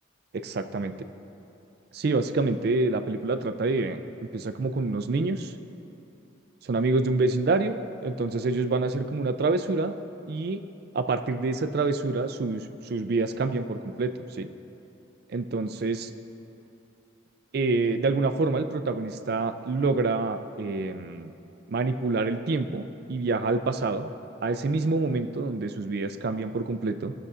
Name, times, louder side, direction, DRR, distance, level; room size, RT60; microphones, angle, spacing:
voice 1, 0.3-0.9 1.9-4.0 4.3-5.5 6.6-7.7 8.0-9.9 10.3-10.6 10.9-14.5 15.3-16.1 17.5-21.3 21.7-24.1 24.4-27.1, right 3 dB, 50° right, 9 dB, 0.4 m, -27 dB
17.0 x 6.7 x 2.5 m, 2.8 s
head